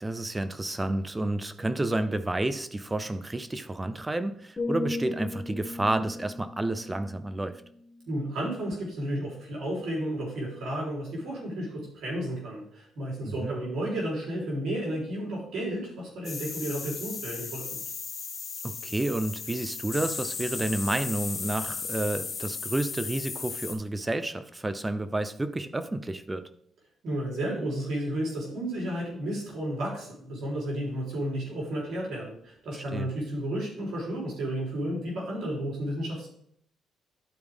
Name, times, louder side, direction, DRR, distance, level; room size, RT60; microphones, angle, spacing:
voice 1, 0.0-7.6 13.2-13.5 18.6-26.5 32.7-33.1, right 2 dB, 15° right, 0.6 m, -30 dB
sound 1, 4.6-8.5 8.9-9.2, left 2 dB, 20° left, 1.8 m, -37 dB
voice 2, 8.1-17.8 27.0-36.3, right 1 dB, 70° right, 3.5 m, -32 dB
sound 2, 16.2-23.7, left 5 dB, 45° left, 1.9 m, -36 dB
11.5 x 4.8 x 3.5 m
cardioid pair, 90°, 0 cm